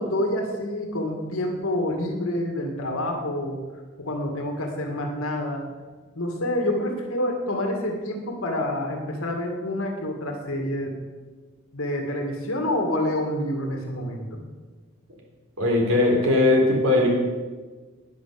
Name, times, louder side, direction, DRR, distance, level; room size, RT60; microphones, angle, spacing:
voice 1, 0.0-3.6 4.0-5.6 6.2-11.0 11.7-14.4, left 1 dB, 90° left, 2 dB, 2.1 m, -27 dB
voice 2, 15.6-17.1, left 2 dB, 85° right, 0 dB, 3.6 m, -19 dB
10.5 x 9.8 x 6.9 m, 1.4 s
head